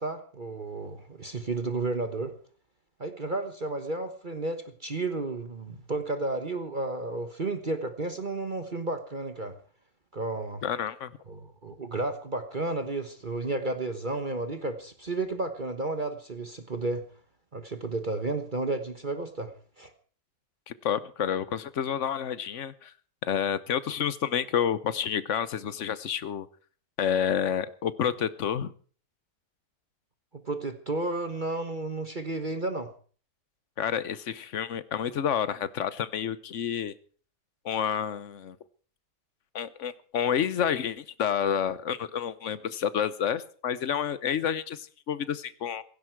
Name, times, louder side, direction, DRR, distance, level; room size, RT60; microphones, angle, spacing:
voice 1, 0.0-2.3 3.0-9.5 10.1-10.6 11.3-17.0 17.5-19.5 19.8-19.9 30.3-32.9, right 2 dB, 30° right, 8 dB, 1.3 m, -32 dB
voice 2, 10.6-11.1 20.7-22.9 23.2-26.5 27.0-28.7 33.8-36.9 37.6-38.6 39.5-45.8, left 8 dB, 55° left, 16 dB, 1.1 m, -29 dB
16.5 x 16.0 x 4.7 m, 0.42 s
omnidirectional pair, 1.8 m